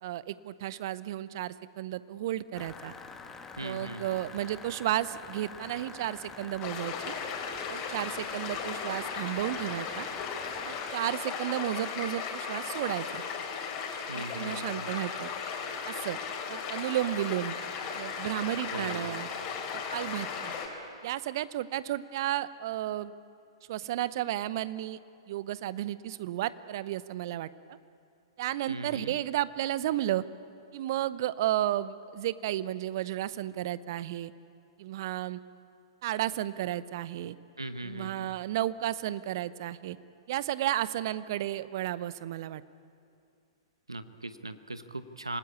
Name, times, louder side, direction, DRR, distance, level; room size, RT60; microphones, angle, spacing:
voice 1, 0.0-2.9 3.6-7.1 7.7-10.1 10.6-13.2 14.1-15.3 15.9-16.2 16.5-17.5 17.9-19.3 19.7-20.5 21.0-23.1 23.7-25.0 25.3-27.8 28.4-30.2 30.7-34.3 34.8-35.4 36.0-37.4 37.8-40.0 40.3-42.6, right 13 dB, 50° right, 16 dB, 0.8 m, -33 dB
sound 1, 2.5-10.9, left 4 dB, 15° left, 1.7 m, -46 dB
voice 2, 3.6-4.3 14.1-14.9 18.7-19.2 28.7-29.2 37.6-38.3 43.9-45.4, right 2 dB, 85° right, 11 dB, 1.1 m, -39 dB
sound 2, 6.6-20.7, left 6 dB, 35° left, 4.1 m, -36 dB
26.5 x 19.0 x 8.6 m, 2.4 s
figure-of-eight pair, 110°, 3 cm